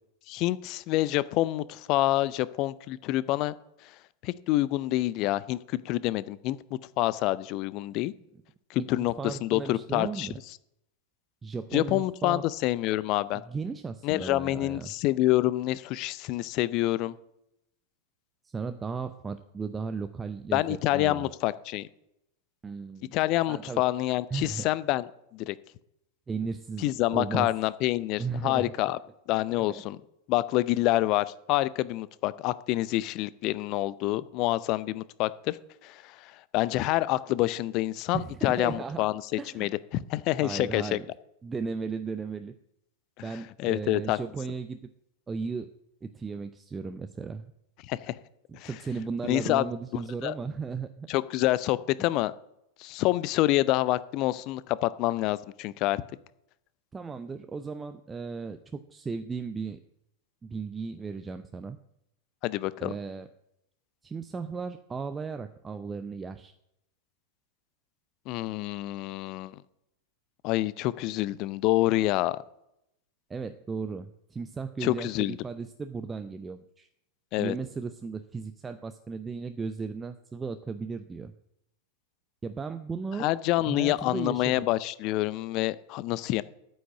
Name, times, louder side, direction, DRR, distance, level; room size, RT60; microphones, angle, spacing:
voice 1, 0.3-3.5 4.2-6.6 7.0-8.1 8.7-10.3 11.7-13.4 14.0-17.1 20.5-21.9 23.1-25.1 25.3-25.6 26.8-29.0 29.3-30.0 30.3-35.6 35.8-41.0 43.6-44.2 47.9-48.2 48.5-48.7 49.2-49.6 50.2-50.3 51.1-52.3 52.8-56.0 62.4-62.9 68.3-69.5 70.4-72.4 74.8-75.4 77.3-77.6 83.2-86.4, left 16 dB, 40° left, 18 dB, 0.5 m, -27 dB
voice 2, 8.8-10.4 11.4-12.5 13.3-14.9 18.4-21.3 22.6-23.2 23.5-23.8 24.3-24.7 26.3-27.5 28.2-28.7 29.7-29.8 38.1-39.1 39.4-39.7 40.3-41.1 41.4-42.5 43.2-44.8 45.3-45.7 46.0-47.5 48.5-51.1 56.9-58.6 58.9-59.8 60.4-61.8 62.8-63.3 64.0-66.5 73.3-76.9 77.4-81.3 82.4-83.3 83.7-84.7, right 5 dB, 15° right, 9 dB, 0.5 m, -36 dB
9.3 x 6.3 x 8.1 m, 0.80 s
figure-of-eight pair, 90°, 0 cm